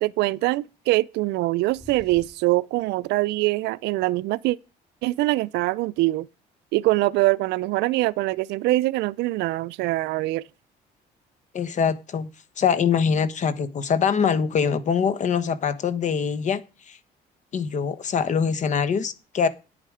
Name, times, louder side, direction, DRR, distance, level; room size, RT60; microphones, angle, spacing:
voice 1, 0.0-4.6 5.0-6.3 6.7-10.4, right 19 dB, 85° right, 0.5 m, -23 dB
sound 1, 1.6-2.5, equal, 5° left, 4.3 m, -47 dB
voice 2, 11.5-12.3 12.6-16.6 16.9-17.0 17.5-19.5, left 6 dB, 45° left, 1.1 m, -23 dB
9.9 x 8.8 x 5.0 m
cardioid pair, 110°, 17 cm